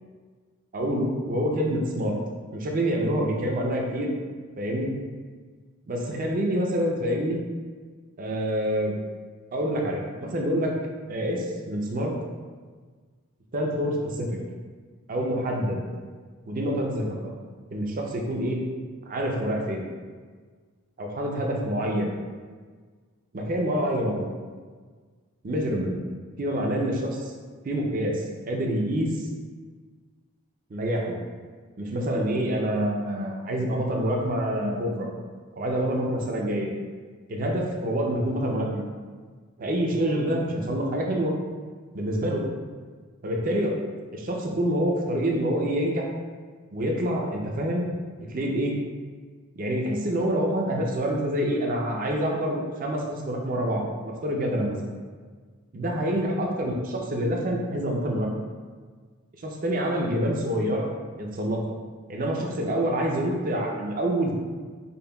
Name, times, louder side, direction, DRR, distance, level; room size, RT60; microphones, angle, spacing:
voice 1, 0.7-2.1 2.5-4.1 4.6-4.9 5.9-7.4 8.2-9.0 9.5-10.7 11.1-12.1 13.5-14.3 15.1-15.8 16.5-17.3 17.7-18.7 19.1-19.8 21.0-22.2 23.3-24.3 25.4-26.0 26.4-27.3 27.6-29.3 30.7-31.2 31.8-35.1 35.6-36.7 37.3-38.8 39.6-41.3 41.9-42.4 43.2-43.7 44.1-46.0 46.7-47.8 48.2-48.8 49.6-54.9 55.7-58.3 59.4-60.9 61.2-61.6 62.1-64.3, equal, 40° right, 0 dB, 0.4 m, -27 dB
5.2 x 2.2 x 2.2 m, 1.5 s
head